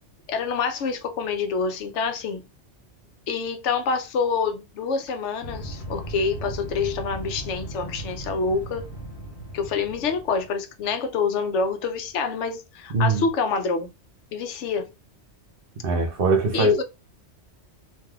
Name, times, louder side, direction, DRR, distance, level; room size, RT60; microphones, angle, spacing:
voice 1, 0.3-2.5 3.3-8.9 9.5-13.9 14.3-14.9 16.5-16.8, left 5 dB, 80° left, 0.9 m, -27 dB
sound 1, 5.4-10.5, right 1 dB, 60° left, 1.6 m, -37 dB
voice 2, 12.9-13.2 15.8-16.8, right 2 dB, 55° right, 0.8 m, -21 dB
3.3 x 2.6 x 2.3 m
omnidirectional pair, 1.2 m